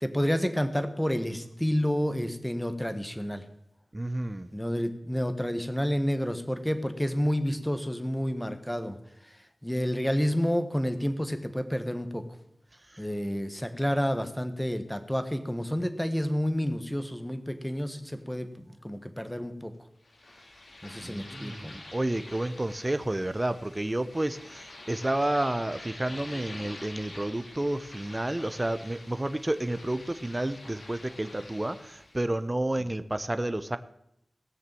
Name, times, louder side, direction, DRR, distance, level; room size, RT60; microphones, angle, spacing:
voice 1, 0.0-3.4 4.5-9.0 9.6-12.2 13.0-19.7 20.8-21.8, equal, 5° left, 9 dB, 1.5 m, -29 dB
voice 2, 3.9-4.5 21.0-33.8, right 1 dB, 25° right, 12 dB, 0.7 m, -30 dB
sound 1, 20.0-32.3, left 2 dB, 75° left, 3.9 m, -47 dB
18.5 x 6.7 x 7.6 m, 0.78 s
wide cardioid pair, 65°, 0 cm